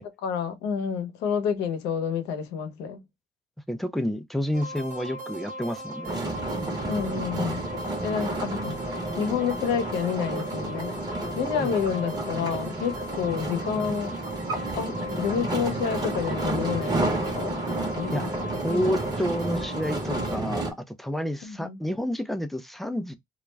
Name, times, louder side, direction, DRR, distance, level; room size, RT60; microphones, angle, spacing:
voice 1, 0.2-3.0 6.8-7.6 8.0-8.7 9.2-10.9 11.3-14.2 14.8-17.1 17.3-17.6 17.9-18.8 21.4-21.8, left 7 dB, 90° left, 0.7 m, -29 dB
voice 2, 3.7-6.2 11.6-11.7 18.1-18.3 18.6-23.2, equal, ahead, 0.4 m, -29 dB
sound 1, 4.5-20.4, right 1 dB, 45° right, 1.1 m, -39 dB
sound 2, 6.1-20.7, right 2 dB, 25° right, 0.9 m, -31 dB
2.4 x 2.1 x 3.2 m
cardioid pair, 110°, 17 cm